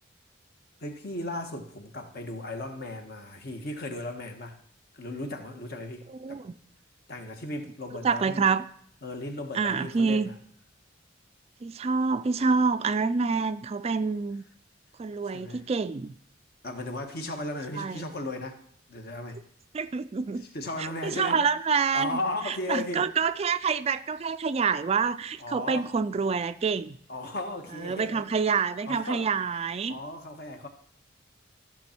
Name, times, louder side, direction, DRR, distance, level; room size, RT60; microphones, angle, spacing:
voice 1, 0.8-4.6 4.9-6.4 7.1-8.5 9.0-10.4 15.3-15.6 16.6-18.6 18.9-19.4 20.5-21.5 21.9-23.1 25.4-25.9 27.1-28.3 28.9-29.3 29.9-30.7, left 2 dB, 55° left, 5 dB, 1.3 m, -36 dB
voice 2, 6.1-6.6 8.0-8.6 9.5-10.3 11.6-14.4 15.0-16.1 17.8-18.0 19.7-20.5 20.8-22.2 22.4-27.0 27.8-30.0, right 5 dB, 30° right, 12 dB, 0.3 m, -27 dB
14.5 x 6.0 x 4.4 m, 0.63 s
head